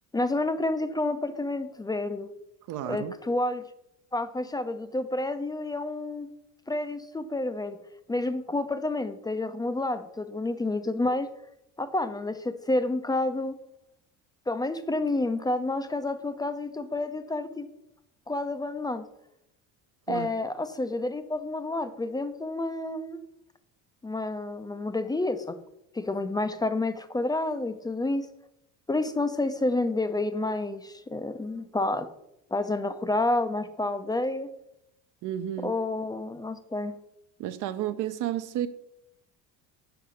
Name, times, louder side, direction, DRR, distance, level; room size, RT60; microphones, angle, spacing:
voice 1, 0.1-2.3 2.9-3.6 4.1-6.3 6.7-7.8 8.1-11.3 11.8-13.6 14.5-17.7 18.3-19.1 20.1-23.2 24.0-25.5 25.9-28.3 28.9-32.1 32.5-34.5 35.6-36.9, left 2 dB, 10° left, 0.3 m, -29 dB
voice 2, 2.7-3.1 20.1-20.3 35.2-35.7 37.4-38.7, right 12 dB, 55° right, 0.5 m, -31 dB
5.8 x 4.6 x 5.0 m
supercardioid pair, 95°, 38 cm